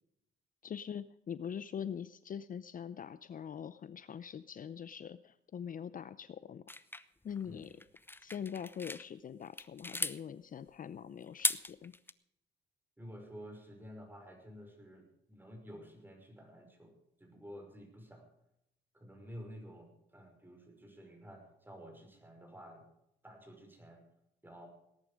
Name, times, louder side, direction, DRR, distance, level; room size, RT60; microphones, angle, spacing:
voice 1, 0.6-6.6 7.2-7.8 8.2-11.9, left 8 dB, 45° left, 15 dB, 0.6 m, -43 dB
sound 1, 6.7-9.0 9.4-10.2 11.2-12.1, left 2 dB, 10° left, 0.8 m, -37 dB
voice 2, 13.0-16.9 17.2-18.3 18.9-22.8 23.2-24.0 24.4-24.7, equal, 10° right, 3 dB, 5.7 m, -51 dB
19.0 x 11.0 x 5.1 m, 0.78 s
cardioid pair, 90°, 20 cm